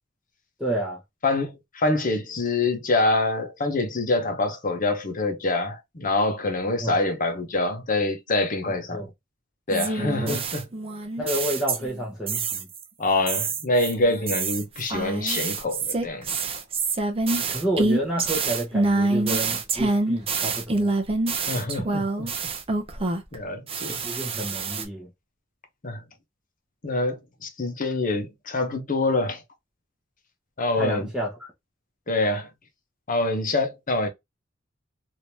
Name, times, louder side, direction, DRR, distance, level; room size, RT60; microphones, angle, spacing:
voice 1, 0.6-1.0 6.8-7.0 8.7-9.1 10.0-10.4 11.2-12.7 17.5-20.9 21.5-21.9 23.9-25.1 30.8-31.5, right 1 dB, 5° right, 0.9 m, -30 dB
voice 2, 1.2-9.1 9.7-10.7 13.0-16.3 21.4-22.3 23.3-24.0 25.8-26.0 26.8-29.4 30.6-31.1 32.1-32.5 33.1-34.1, left 2 dB, 45° left, 0.9 m, -25 dB
sound 1, 9.7-12.0 12.3-12.8 13.3-23.4 23.7-24.8, right 3 dB, 30° right, 0.6 m, -26 dB
3.4 x 2.8 x 2.8 m
head